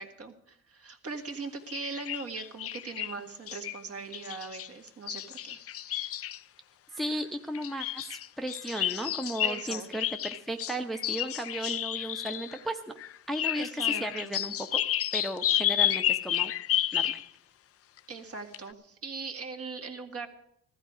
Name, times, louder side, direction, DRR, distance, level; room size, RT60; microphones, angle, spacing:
voice 1, 0.0-5.6 9.4-9.9 13.5-14.3 18.1-20.3, right 4 dB, 50° right, 4 dB, 1.9 m, -40 dB
sound 1, 1.7-3.1 3.5-3.8 4.1-6.4 7.5-12.6 13.0-17.2 18.0-18.1 18.5-18.6, left 12 dB, 50° left, 0.5 m, -31 dB
voice 2, 7.0-12.9 13.3-14.8 15.1-16.5 16.9-17.2, right 1 dB, ahead, 5 dB, 0.8 m, -35 dB
15.5 x 13.0 x 5.0 m, 0.73 s
cardioid pair, 90°, 30 cm